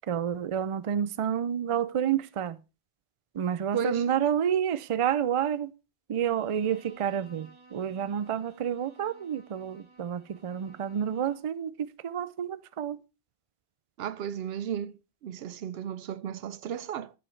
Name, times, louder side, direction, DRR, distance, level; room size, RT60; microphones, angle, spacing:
voice 1, 0.1-2.6 3.3-5.7 6.1-13.0, right 9 dB, 55° right, 0.3 m, -29 dB
voice 2, 3.7-4.0 14.0-15.0 15.2-17.1, right 9 dB, 70° right, 0.8 m, -33 dB
Bowed string instrument, 6.1-11.6, right 3 dB, 20° right, 1.7 m, -57 dB
14.0 x 5.2 x 3.2 m
omnidirectional pair, 1.1 m